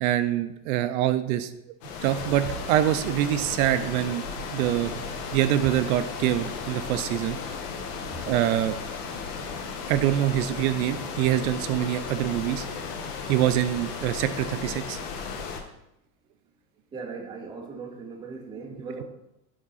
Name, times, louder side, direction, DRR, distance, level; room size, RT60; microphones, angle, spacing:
voice 1, 0.0-1.5 2.0-4.2 4.5-4.9 5.3-7.4 8.3-8.8 9.9-12.7 13.3-15.0, right 12 dB, 65° right, 11 dB, 0.5 m, -25 dB
sound 1, 1.8-15.6, left 5 dB, 80° left, 1.0 m, -35 dB
voice 2, 16.9-19.0, right 4 dB, 10° right, 2 dB, 0.4 m, -38 dB
6.3 x 4.0 x 4.0 m, 0.85 s
supercardioid pair, 135°, 46 cm